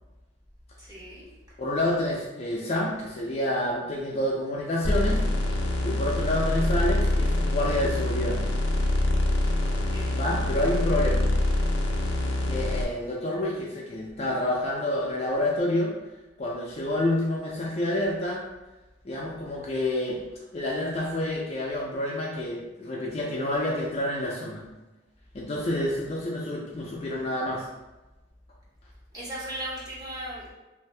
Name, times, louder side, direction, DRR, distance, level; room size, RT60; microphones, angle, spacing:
voice 1, 0.8-1.3 9.6-10.2 29.1-30.5, right 1 dB, 20° right, -7 dB, 0.8 m, -37 dB
voice 2, 1.6-5.2 5.8-8.4 10.2-11.2 12.5-15.9 16.4-18.5 19.0-20.2 20.5-24.6 25.3-27.7, left 1 dB, 35° left, -3 dB, 0.4 m, -28 dB
sound 1, 4.8-12.8, left 1 dB, 85° left, 0.5 m, -25 dB
2.6 x 2.5 x 3.2 m, 1.1 s
head